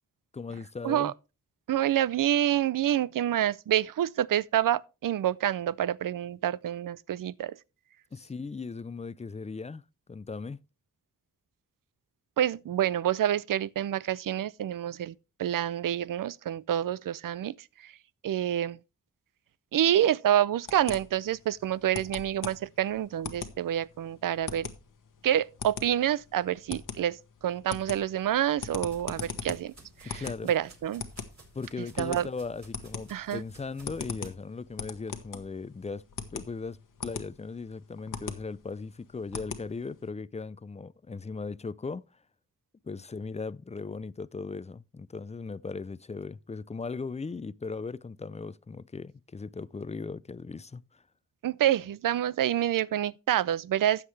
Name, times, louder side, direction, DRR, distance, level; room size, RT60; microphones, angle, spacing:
voice 1, 0.3-1.1 8.1-9.8 10.1-10.6 30.0-30.5 31.5-36.1 36.3-42.0 42.8-51.0, left 4 dB, 20° left, 0.4 m, -38 dB
voice 2, 1.7-7.6 12.4-15.1 15.4-17.9 18.2-18.8 19.7-24.7 25.2-29.7 30.0-31.0 32.0-32.3 33.1-33.4 51.4-54.1, right 11 dB, 85° right, 0.5 m, -27 dB
sound 1, 20.7-40.1, left 6 dB, 85° left, 1.2 m, -40 dB
sound 2, 27.9-34.3, right 2 dB, 60° right, 4.7 m, -56 dB
13.0 x 8.1 x 3.2 m
wide cardioid pair, 70°, 32 cm